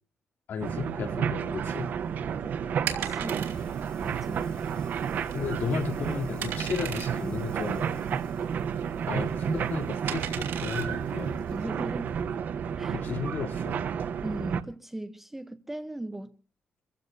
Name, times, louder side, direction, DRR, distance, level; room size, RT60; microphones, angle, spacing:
voice 1, 0.5-1.9 5.3-8.2 9.1-11.4 12.9-13.9, left 6 dB, 60° left, 3.6 m, -34 dB
sound 1, 0.6-14.6, right 7 dB, 50° right, 0.9 m, -31 dB
sound 2, 1.6-12.2, right 9 dB, 85° right, 3.0 m, -39 dB
sound 3, 2.7-13.8, left 3 dB, 25° left, 4.8 m, -60 dB
voice 2, 3.0-3.5 4.0-4.5 11.5-12.1 12.8-13.0 14.2-16.4, right 1 dB, 5° right, 0.7 m, -38 dB
29.0 x 15.0 x 2.6 m
cardioid pair, 155°, 4 cm